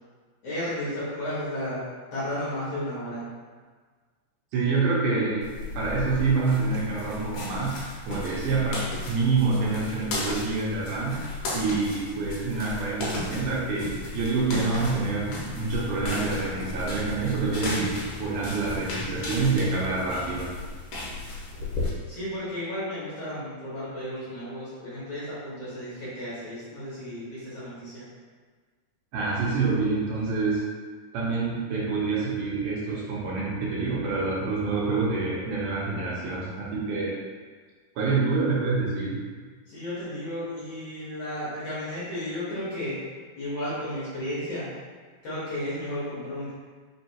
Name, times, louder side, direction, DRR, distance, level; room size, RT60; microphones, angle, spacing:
voice 1, 0.4-1.8 2.1-3.2 22.1-28.1 39.7-43.0 43.4-44.7 45.2-46.5, left 1 dB, 55° left, -11 dB, 2.1 m, -33 dB
voice 2, 4.5-5.5 5.8-7.7 8.1-11.3 11.5-15.3 15.6-20.5 29.1-30.6 31.1-37.1 38.0-39.2, right 4 dB, 75° right, -5 dB, 2.2 m, -27 dB
sound 1, 5.4-21.9, left 2 dB, 75° left, 2.2 m, -35 dB
5.3 x 2.9 x 2.9 m, 1.5 s
omnidirectional pair, 3.9 m